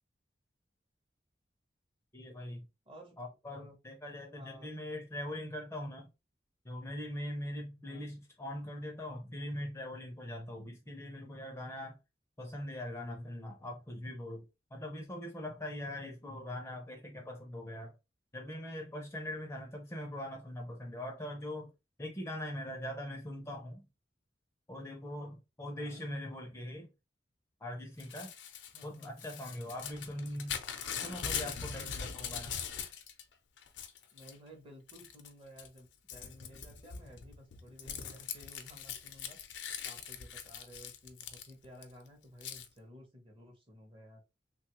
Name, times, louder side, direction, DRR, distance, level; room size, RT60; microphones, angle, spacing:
voice 1, 2.1-2.6 3.2-6.1 6.6-12.0 12.4-14.4 14.7-17.9 18.3-21.7 22.0-23.8 24.7-26.9 27.6-28.3 28.8-30.6 31.0-32.5, left 1 dB, 15° left, 0.5 m, -41 dB
voice 2, 2.9-3.2 3.5-3.8 4.3-4.7 7.8-8.0 25.7-26.0 28.7-29.1 34.1-39.4 39.8-44.2, equal, 30° right, 0.8 m, -54 dB
Crumpling crinkling / Tearing, 28.0-33.2 33.6-34.4 34.9-35.3 35.6-41.8 42.4-42.7, left 7 dB, 80° left, 0.5 m, -41 dB
3.1 x 2.3 x 2.9 m
head